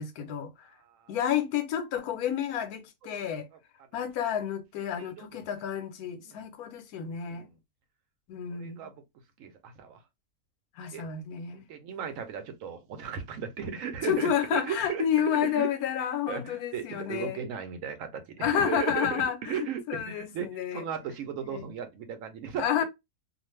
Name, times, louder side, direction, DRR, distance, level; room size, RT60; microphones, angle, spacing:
voice 1, 0.0-0.7 1.1-3.5 3.9-7.5 8.3-8.9 10.8-11.7 14.0-17.4 18.4-20.8 21.5-21.7 22.6-22.8, left 9 dB, 90° left, 1.1 m, -30 dB
voice 2, 0.8-1.1 3.1-3.3 5.0-5.3 6.3-6.4 7.3-7.5 8.6-9.0 9.4-10.0 10.9-11.0 11.5-15.0 15.3-15.7 16.3-22.8, right 8 dB, 70° right, 0.9 m, -36 dB
2.4 x 2.4 x 3.1 m
omnidirectional pair, 1.5 m